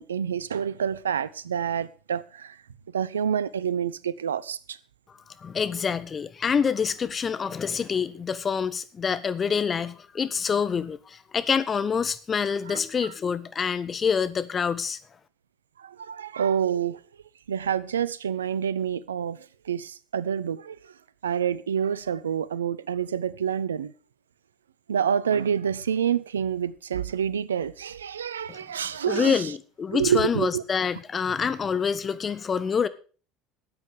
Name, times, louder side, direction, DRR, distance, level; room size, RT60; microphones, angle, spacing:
voice 1, 0.0-2.6 2.9-4.8 12.7-12.8 15.8-17.0 17.5-19.4 19.7-20.8 21.2-23.9 24.9-29.5 29.9-30.6, right 8 dB, 90° right, 0.7 m, -27 dB
voice 2, 5.4-15.0 28.5-28.6 29.1-32.9, left 6 dB, 35° left, 1.3 m, -26 dB
13.5 x 8.9 x 6.5 m
hypercardioid pair, 70°, 0 cm